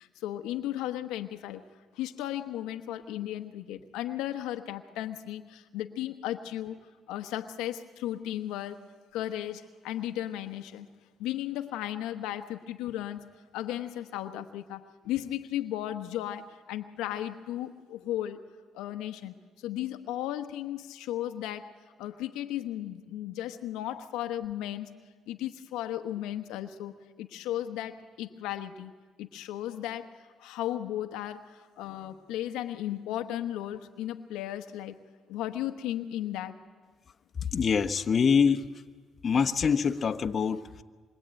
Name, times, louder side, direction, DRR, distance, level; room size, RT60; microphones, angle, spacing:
voice 1, 0.0-1.6 1.9-6.8 7.1-10.9 11.2-18.4 18.7-24.9 25.3-28.9 29.2-35.0 35.3-36.6, left 12 dB, 85° left, 7 dB, 1.2 m, -35 dB
voice 2, 37.5-38.7 39.2-40.8, left 6 dB, 45° left, 6 dB, 1.2 m, -25 dB
26.5 x 23.5 x 9.0 m, 1.5 s
supercardioid pair, 70°, 0 cm